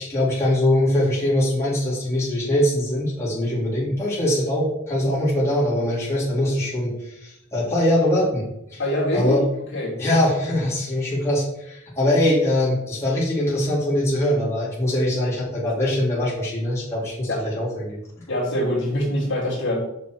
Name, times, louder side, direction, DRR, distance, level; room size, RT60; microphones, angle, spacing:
voice 1, 0.0-8.8 9.1-9.4 10.0-18.0, left 1 dB, 15° left, -9 dB, 3.4 m, -22 dB
voice 2, 8.8-9.4 9.7-9.9 17.3-17.4 18.3-19.8, left 1 dB, 60° left, -4 dB, 2.7 m, -24 dB
7.2 x 5.5 x 4.7 m, 0.83 s
head